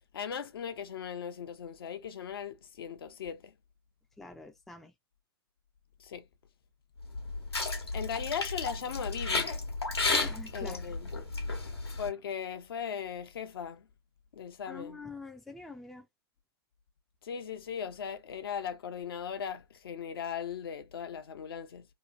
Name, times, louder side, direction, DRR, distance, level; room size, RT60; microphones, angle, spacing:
voice 1, 0.1-3.5 6.0-6.2 7.9-9.5 10.5-11.1 12.0-13.9 14.3-15.0 17.2-21.9, left 7 dB, 65° left, 0.7 m, -38 dB
voice 2, 4.2-4.9 10.1-10.9 11.5-11.7 14.7-16.1, left 3 dB, ahead, 0.3 m, -45 dB
sound 1, 7.0-12.1, left 3 dB, 90° left, 1.1 m, -33 dB
3.0 x 2.1 x 2.4 m
figure-of-eight pair, 110°, 13 cm